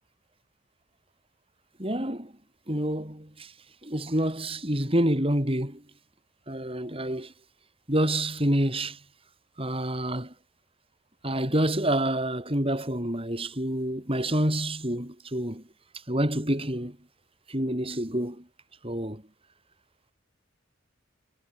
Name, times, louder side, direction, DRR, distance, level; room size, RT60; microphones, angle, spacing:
voice 1, 1.8-2.3 2.7-3.5 3.8-5.8 6.5-7.3 7.9-9.0 9.6-10.3 11.2-15.6 16.1-17.0 17.5-18.4 18.8-19.2, right 1 dB, 30° right, 8.0 m, -27 dB
head